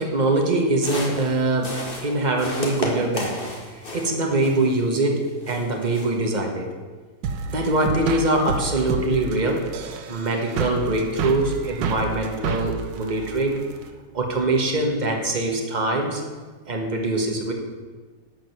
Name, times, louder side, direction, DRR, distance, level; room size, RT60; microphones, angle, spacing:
voice 1, 0.0-3.4 3.7-6.7 7.5-9.7 10.1-13.6 14.1-16.2 16.7-17.5, right 2 dB, 25° right, 1 dB, 1.4 m, -23 dB
sound 1, 0.7-4.9 5.2-6.2, left 1 dB, 30° left, 1.8 m, -33 dB
sound 2, 7.2-13.9, right 4 dB, 75° right, 1.5 m, -30 dB
12.0 x 5.2 x 7.8 m, 1.4 s
omnidirectional pair, 2.0 m